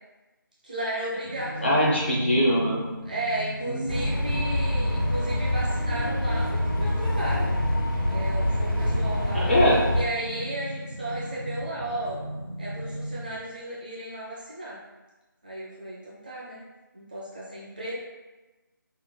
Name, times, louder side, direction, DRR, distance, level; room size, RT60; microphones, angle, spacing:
voice 1, 0.6-1.9 3.1-7.6 8.1-9.6 10.0-12.2 12.6-14.8 15.4-16.6 16.9-18.0, right 1 dB, 25° right, -7 dB, 0.5 m, -34 dB
sound 1, 1.2-13.3, equal, 75° right, 0.6 m, -37 dB
voice 2, 1.6-2.8 3.7-4.4 9.3-9.8, equal, 30° left, -5 dB, 0.5 m, -23 dB
sound 2, 3.9-10.0, left 1 dB, 80° left, 1.3 m, -26 dB
3.8 x 2.0 x 2.2 m, 1.1 s
figure-of-eight pair, 160°, 12 cm